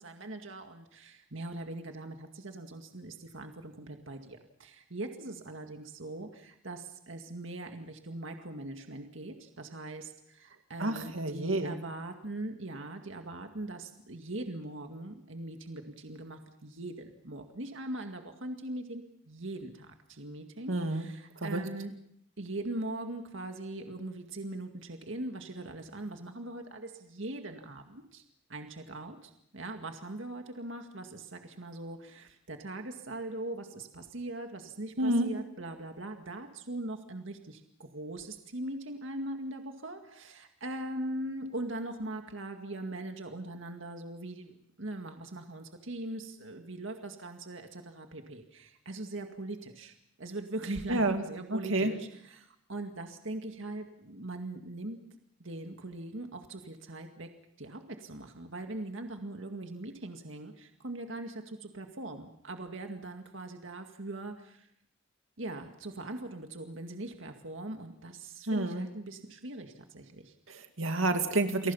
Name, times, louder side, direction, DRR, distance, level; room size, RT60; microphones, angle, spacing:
voice 1, 0.0-21.9 22.4-28.2 28.5-55.0 55.4-57.3 57.6-64.7 65.4-70.3, right 2 dB, 70° right, 5 dB, 2.1 m, -41 dB
voice 2, 10.8-11.8 20.7-21.1 21.4-21.6 35.0-35.3 50.9-51.2 51.5-51.9 68.5-68.8 70.5-71.7, right 2 dB, 90° right, 6 dB, 2.3 m, -29 dB
29.5 x 23.0 x 5.6 m, 0.71 s
head